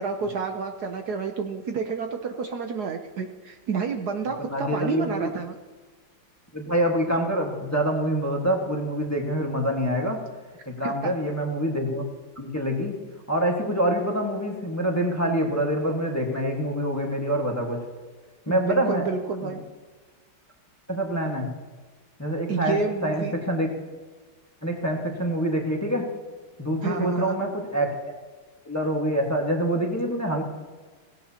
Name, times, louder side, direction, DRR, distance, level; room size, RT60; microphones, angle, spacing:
voice 1, 0.0-5.5 10.8-11.1 18.5-19.6 22.5-23.3 26.8-27.3, right 5 dB, 65° right, 5 dB, 1.2 m, -29 dB
voice 2, 4.4-5.3 6.5-10.2 10.7-12.0 12.4-12.9 13.3-17.8 18.5-19.0 19.4-19.5 20.9-21.5 22.2-23.7 24.6-26.0 26.6-28.1 28.7-30.4, equal, 10° left, 0 dB, 1.3 m, -26 dB
17.0 x 17.0 x 2.9 m, 1.4 s
omnidirectional pair, 2.1 m